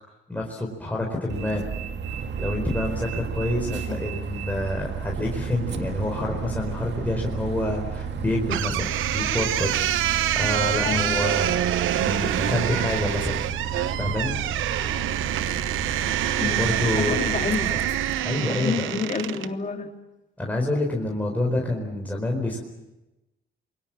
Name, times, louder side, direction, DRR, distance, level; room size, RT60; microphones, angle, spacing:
voice 1, 0.3-1.7 2.4-11.6 12.0-13.5 14.0-14.4 16.4-17.2 17.7-17.8 18.2-18.9 20.4-22.6, left 1 dB, 10° left, -1 dB, 4.5 m, -27 dB
Bus, 1.3-18.2, right 6 dB, 65° right, 2.0 m, -32 dB
voice 2, 3.9-4.2 10.8-11.3 16.4-17.8 18.5-19.9, left 5 dB, 40° left, 4 dB, 2.7 m, -30 dB
sound 1, 8.5-19.5, right 12 dB, 85° right, 1.0 m, -26 dB
28.0 x 23.0 x 7.5 m, 1.0 s
cardioid pair, 90°, 20 cm